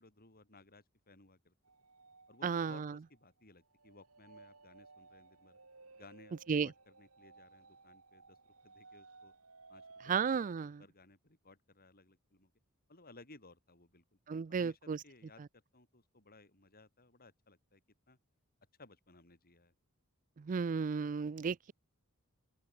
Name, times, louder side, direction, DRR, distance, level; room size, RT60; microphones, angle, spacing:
voice 1, 0.0-1.5 2.3-5.6 5.9-9.3 9.7-12.5 12.9-14.2 14.5-17.8 18.1-18.2 18.8-19.7, left 2 dB, 45° left, 7.7 m, -60 dB
sound 1, 1.6-10.4, right 3 dB, 75° right, 7.1 m, -59 dB
voice 2, 2.4-2.9 6.5-6.7 10.1-10.8 14.3-15.0 20.4-21.7, right 6 dB, 35° right, 0.4 m, -34 dB
open air
head